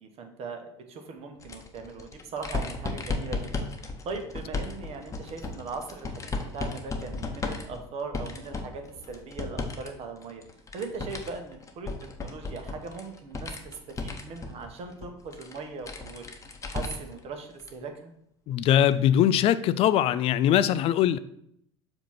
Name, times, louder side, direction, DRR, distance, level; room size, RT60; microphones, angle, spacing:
voice 1, 0.0-10.4 10.7-16.2 16.6-18.1, right 4 dB, 45° right, 5 dB, 1.1 m, -39 dB
sound 1, 1.4-9.9 10.2-17.2 17.6-17.7 18.9-19.0, left 3 dB, 20° left, 0.9 m, -35 dB
voice 2, 18.5-21.2, left 11 dB, 45° left, 15 dB, 0.4 m, -22 dB
7.2 x 2.9 x 5.6 m, 0.72 s
figure-of-eight pair, 70°, 14 cm